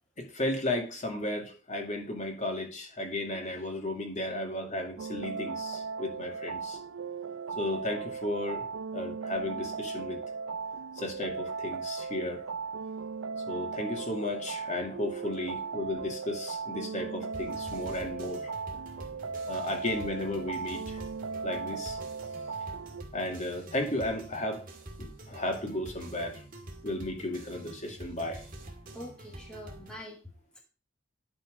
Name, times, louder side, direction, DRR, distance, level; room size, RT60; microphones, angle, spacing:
voice 1, 0.2-6.8 7.6-10.2 11.0-12.4 13.5-18.5 19.5-21.0 21.4-22.0 23.1-24.6 25.0-26.4 26.8-28.4, left 1 dB, 35° left, 3 dB, 2.2 m, -34 dB
sound 1, 5.0-23.0, right 5 dB, 80° right, 0.5 m, -37 dB
sound 2, 17.3-30.0, right 1 dB, 45° right, 2.1 m, -47 dB
voice 2, 28.9-30.6, equal, 5° left, -1 dB, 1.3 m, -45 dB
11.5 x 4.4 x 5.0 m, 0.36 s
head